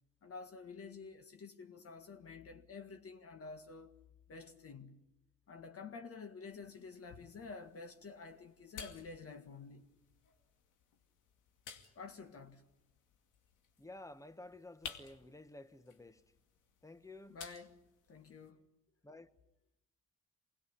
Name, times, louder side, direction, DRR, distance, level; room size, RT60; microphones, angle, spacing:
voice 1, 0.2-4.0 4.3-5.1 5.5-9.9 12.0-12.7 17.3-18.7, left 4 dB, 50° left, 1.8 m, -50 dB
sound 1, 6.5-18.5, left 7 dB, 90° left, 2.5 m, -56 dB
voice 2, 13.8-16.2 16.8-17.4 19.0-19.3, left 2 dB, 10° left, 1.3 m, -52 dB
25.0 x 20.0 x 9.9 m
cardioid pair, 90°, 30 cm